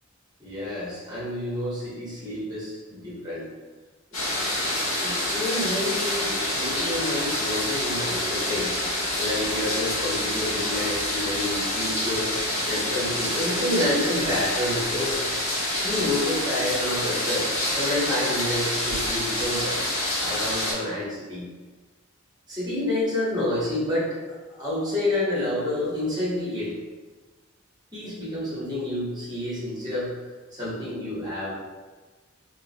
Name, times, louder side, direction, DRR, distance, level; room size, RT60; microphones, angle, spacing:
voice 1, 0.4-3.4 4.1-4.3 5.0-8.7 9.2-15.2 15.8-19.7 20.2-21.5 22.5-24.1 24.5-26.7 27.9-30.1 30.5-31.5, left 1 dB, 20° right, -9 dB, 1.4 m, -29 dB
sound 1, 4.1-20.7, left 1 dB, 75° left, 1.4 m, -27 dB
3.1 x 2.8 x 2.9 m, 1.3 s
head